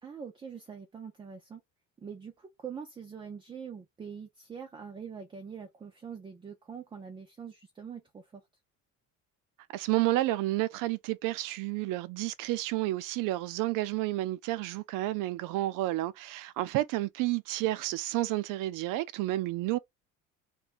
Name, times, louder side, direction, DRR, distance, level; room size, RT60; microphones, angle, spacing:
voice 1, 0.0-1.6 2.0-8.4, right 6 dB, 15° right, 0.4 m, -44 dB
voice 2, 9.7-19.8, right 17 dB, 70° right, 0.5 m, -30 dB
2.6 x 2.2 x 4.0 m
cardioid pair, 165°, 33 cm